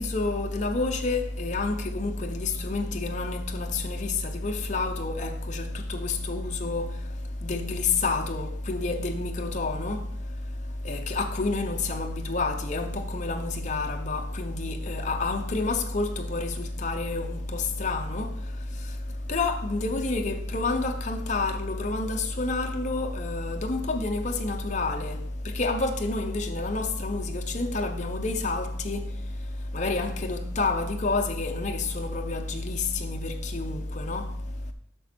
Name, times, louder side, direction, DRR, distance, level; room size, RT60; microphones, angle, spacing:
voice 1, 0.0-6.9 7.4-10.0 10.8-18.3 19.3-25.2 25.6-29.1 29.7-34.2, left 3 dB, 40° left, 0.9 m, -29 dB
8.0 x 6.0 x 4.4 m
head